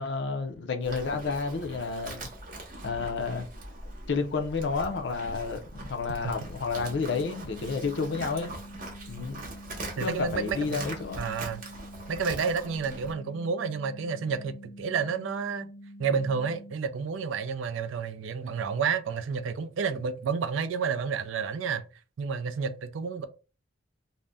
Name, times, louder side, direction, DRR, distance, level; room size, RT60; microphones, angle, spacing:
voice 1, 0.0-2.3 2.8-3.5 4.1-8.5 9.1-9.4 10.0-11.3, left 4 dB, 65° left, 0.5 m, -31 dB
Livestock farm animals working animals, 0.8-13.1, right 2 dB, 45° right, 0.7 m, -42 dB
sound 1, 6.7-16.7, equal, 80° left, 0.9 m, -47 dB
voice 2, 10.0-10.8 11.2-11.6 12.1-15.7 16.0-21.8 22.2-23.3, right 5 dB, 85° right, 0.4 m, -30 dB
2.5 x 2.1 x 3.4 m
head